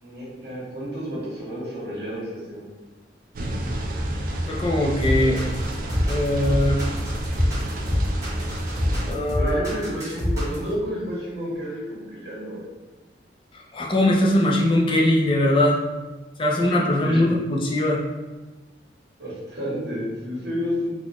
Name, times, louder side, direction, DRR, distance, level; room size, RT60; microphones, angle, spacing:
voice 1, 0.0-2.7 9.4-12.6 17.0-17.2 19.2-20.9, equal, 70° right, -6 dB, 1.5 m, -31 dB
sound 1, 3.3-9.1, right 1 dB, 50° right, 0.4 m, -29 dB
voice 2, 4.5-5.4 6.1-6.8 9.1-9.6 13.7-15.8 16.4-18.0, left 1 dB, 30° left, -2 dB, 0.4 m, -21 dB
sound 2, 5.0-10.7, left 1 dB, 20° right, 1.2 m, -25 dB
4.0 x 2.4 x 2.9 m, 1.2 s
head